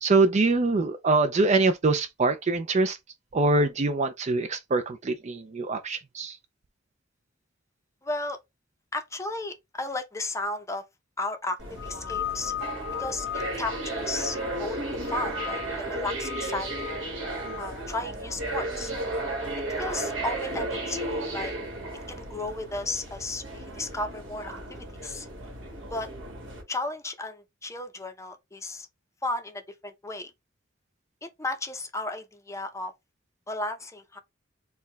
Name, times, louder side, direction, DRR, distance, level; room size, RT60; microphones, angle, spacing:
voice 1, 0.0-3.0 3.3-6.4, right 3 dB, 35° right, 0.4 m, -24 dB
voice 2, 8.0-8.4 8.9-10.8 11.2-12.5 13.0-16.7 17.6-18.9 19.8-21.5 22.1-25.3 25.9-26.1 26.7-28.9 29.2-30.3 31.2-32.9 33.5-34.2, left 2 dB, 15° left, 0.6 m, -34 dB
sound 1, 11.6-26.6, right 2 dB, 70° right, 1.6 m, -34 dB
sound 2, 11.8-14.7 15.0-15.8 16.2-17.7, left 11 dB, 85° left, 0.7 m, -37 dB
4.5 x 2.3 x 3.3 m
head